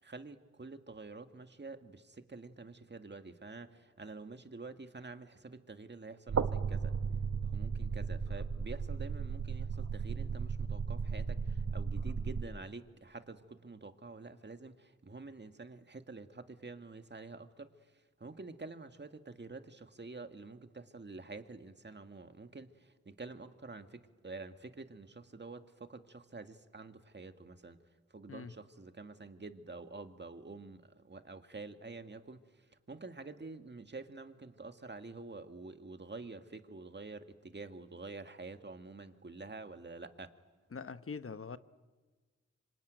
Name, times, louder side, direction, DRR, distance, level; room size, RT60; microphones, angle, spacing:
voice 1, 0.0-6.9 7.4-27.8 28.1-40.3, right 3 dB, 35° right, 1.9 m, -48 dB
sound 1, 6.3-12.4, right 5 dB, 60° right, 1.1 m, -35 dB
voice 2, 40.7-41.6, left 5 dB, 50° left, 1.0 m, -43 dB
26.0 x 25.0 x 9.2 m
cardioid pair, 55°, 29 cm